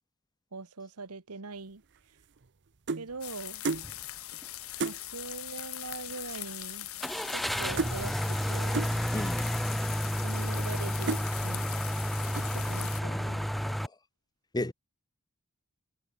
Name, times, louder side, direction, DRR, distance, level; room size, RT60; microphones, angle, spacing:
voice 1, 0.5-1.8 3.0-3.6 4.8-6.9 7.3-8.8 10.2-11.7 12.5-13.4, right 4 dB, 85° right, 1.4 m, -42 dB
sound 1, 1.9-3.1 3.6-3.9 4.3-4.4 4.8-5.0 5.9-6.0 6.2-6.6 6.8-7.5 7.8-8.0 8.7-9.0 9.7-9.8 10.4-10.7 11.1-11.3 11.8-12.1 12.4-12.7, right 4 dB, 55° right, 0.8 m, -34 dB
sound 2, 3.2-13.0, left 15 dB, 65° left, 3.9 m, -41 dB
sound 3, 3.7-4.0 4.4-4.5 7.0-13.9, equal, ahead, 0.4 m, -31 dB
voice 2, 13.0-13.7 14.5-14.7, left 1 dB, 20° left, 1.2 m, -35 dB
head